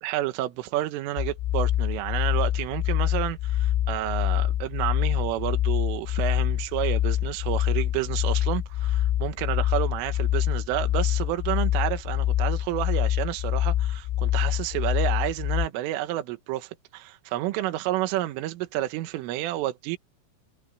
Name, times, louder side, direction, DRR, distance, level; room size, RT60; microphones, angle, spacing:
voice 1, 0.0-20.0, right 15 dB, 80° right, 3.8 m, -30 dB
sound 1, 1.2-15.7, left 12 dB, 90° left, 3.4 m, -25 dB
omnidirectional pair, 5.8 m